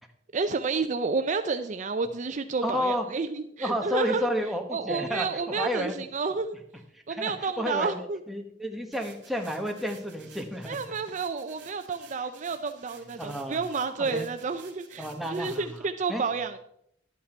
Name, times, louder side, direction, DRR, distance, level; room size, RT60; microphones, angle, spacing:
voice 1, 0.3-4.3 4.7-6.6 7.1-8.2 10.7-16.6, right 4 dB, 40° right, 9 dB, 0.5 m, -30 dB
voice 2, 2.6-3.1 3.6-6.0 6.9-10.8 13.2-13.6 14.0-14.3 15.0-16.2, equal, ahead, 2 dB, 1.2 m, -31 dB
sound 1, 8.9-15.8, right 7 dB, 70° right, 2.1 m, -53 dB
11.5 x 8.4 x 4.4 m, 0.72 s
head